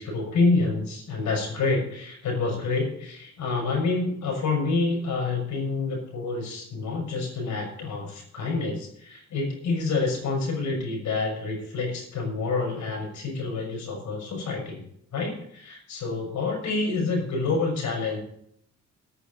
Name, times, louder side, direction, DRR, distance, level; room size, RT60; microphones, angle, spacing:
voice 1, 0.0-14.8 15.1-18.2, left 3 dB, 75° left, 1 dB, 6.3 m, -28 dB
9.4 x 8.5 x 8.2 m, 0.68 s
cardioid pair, 90°, 30 cm